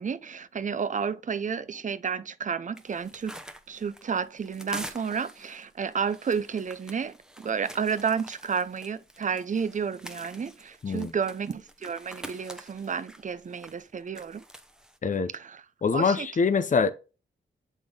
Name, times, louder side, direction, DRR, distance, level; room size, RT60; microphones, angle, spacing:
voice 1, 0.0-3.3 3.7-14.4 15.3-15.6 15.9-16.3, right 6 dB, 40° right, 0.5 m, -31 dB
sound 1, 2.8-15.0, right 1 dB, 5° right, 0.8 m, -46 dB
voice 2, 15.8-16.9, left 5 dB, 40° left, 0.6 m, -24 dB
8.7 x 3.5 x 3.7 m
cardioid pair, 80°, 21 cm